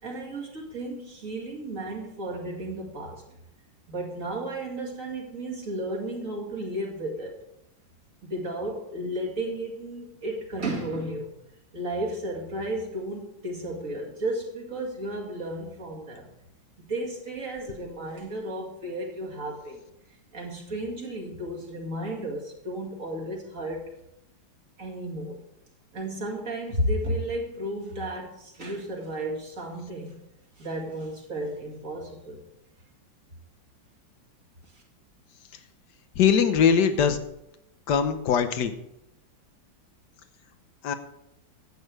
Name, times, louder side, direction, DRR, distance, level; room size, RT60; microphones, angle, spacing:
voice 1, 0.0-3.2 3.9-7.4 8.2-11.3 11.7-16.3 16.8-19.8 20.3-23.9 24.8-25.4 25.9-30.2 30.6-32.4 34.7-34.8, right 1 dB, 45° right, -1 dB, 2.5 m, -33 dB
voice 2, 36.1-37.2 37.9-38.7 40.8-40.9, left 7 dB, 65° left, 10 dB, 1.5 m, -21 dB
12.0 x 8.6 x 4.8 m, 0.81 s
omnidirectional pair, 2.1 m